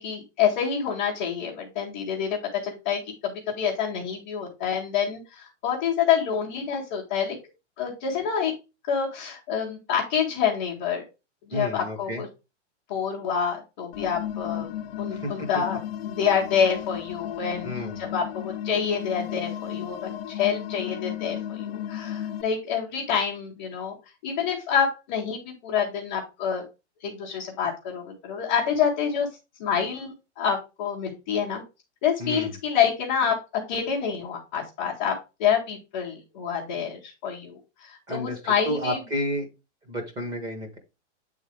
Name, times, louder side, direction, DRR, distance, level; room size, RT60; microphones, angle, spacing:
voice 1, 0.0-7.4 7.8-8.5 8.9-11.0 11.5-12.3 12.9-14.7 15.0-15.8 16.1-23.9 24.2-26.6 27.0-29.3 29.6-31.6 32.0-33.4 33.7-39.0, left 7 dB, 10° left, -6 dB, 0.4 m, -27 dB
voice 2, 11.5-12.2 15.1-15.5 17.6-18.1 32.2-32.5 38.1-39.5 39.9-40.8, left 1 dB, 10° right, 5 dB, 0.8 m, -31 dB
sound 1, 13.9-22.4, left 10 dB, 55° left, 0.6 m, -35 dB
8.1 x 3.6 x 3.3 m, 0.27 s
supercardioid pair, 175°, 36 cm